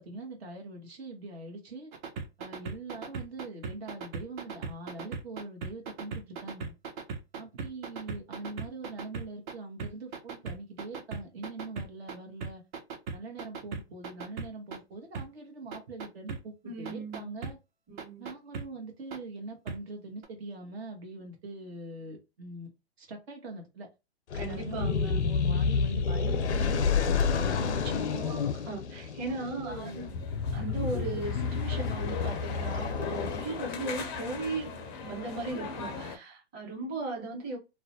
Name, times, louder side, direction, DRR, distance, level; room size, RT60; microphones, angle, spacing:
voice 1, 0.0-1.9 2.4-6.7 7.4-12.6 13.1-17.6 18.2-22.7 23.0-23.9 24.4-28.4 29.3-30.2, right 2 dB, 70° right, 0.9 m, -43 dB
sound 1, 1.9-9.5 9.8-12.1 12.4-14.8 15.1-15.2 15.7-16.4 16.8-17.5 18.0-18.6 19.1-19.2 19.7-19.8 20.2-20.3, right 5 dB, 45° right, 0.7 m, -37 dB
voice 2, 16.6-17.4 17.9-18.3 24.3-25.2 27.7-30.1 30.5-34.7 35.0-37.6, right 3 dB, 30° right, 1.1 m, -37 dB
sound 2, 24.3-33.8, left 5 dB, 85° left, 0.5 m, -30 dB
sound 3, 29.7-36.2, left 4 dB, 25° left, 0.4 m, -37 dB
2.4 x 2.1 x 2.6 m
hypercardioid pair, 120°, 33 cm